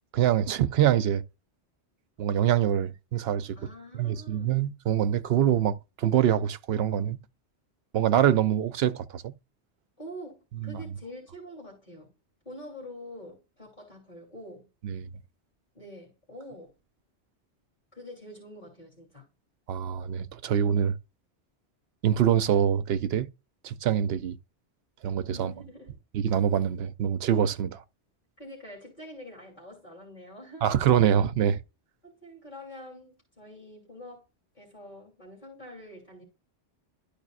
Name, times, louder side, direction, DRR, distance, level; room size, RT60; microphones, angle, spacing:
voice 1, 0.1-1.2 2.2-3.6 4.0-7.2 7.9-9.3 10.6-10.8 14.8-15.1 19.7-21.0 22.0-23.3 23.6-24.4 25.0-25.5 26.1-27.8 30.6-31.6, right 10 dB, 70° right, 0.8 m, -25 dB
voice 2, 3.6-4.6 10.0-12.1 12.4-14.7 15.7-16.7 17.9-19.3 25.3-26.0 28.4-30.8 32.0-34.3 34.5-36.2, equal, 40° left, 3.2 m, -45 dB
12.0 x 5.2 x 2.4 m
omnidirectional pair, 1.2 m